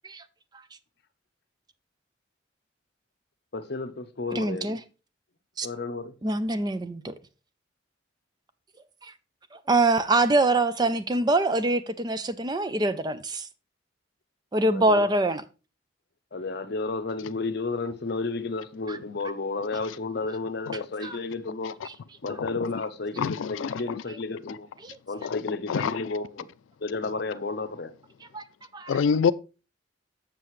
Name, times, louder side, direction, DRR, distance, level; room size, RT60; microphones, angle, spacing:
voice 1, 3.5-4.8 5.6-6.1 14.7-15.1 16.3-21.8 22.2-24.7 25.1-26.5 26.8-27.9, left 3 dB, 55° left, 0.7 m, -32 dB
voice 2, 4.3-4.8 5.6-5.7 6.2-7.1 9.7-13.5 14.5-15.4 18.9-19.0 21.0-21.1 28.3-28.4 28.7-29.0, right 2 dB, 20° right, 0.4 m, -24 dB
voice 3, 23.2-24.0 25.2-25.4 25.7-25.9 28.9-29.3, left 6 dB, 85° left, 0.3 m, -25 dB
7.6 x 6.8 x 3.1 m
head